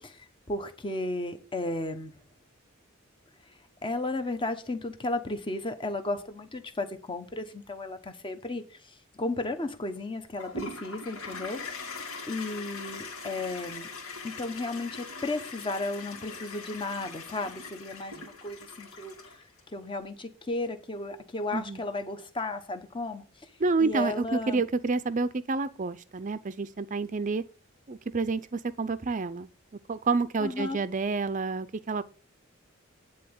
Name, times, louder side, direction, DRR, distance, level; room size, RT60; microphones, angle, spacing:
voice 1, 0.0-2.1 3.8-8.6 9.2-11.6 12.3-13.9 14.2-19.1 19.7-23.2 23.8-24.6 30.4-30.8, left 2 dB, 25° left, 1.0 m, -34 dB
Toilet flush, 10.4-19.6, left 3 dB, 85° left, 2.7 m, -41 dB
voice 2, 21.5-21.8 23.6-27.4 27.9-29.5 29.9-32.0, right 4 dB, 35° right, 0.5 m, -29 dB
10.0 x 3.8 x 7.1 m
head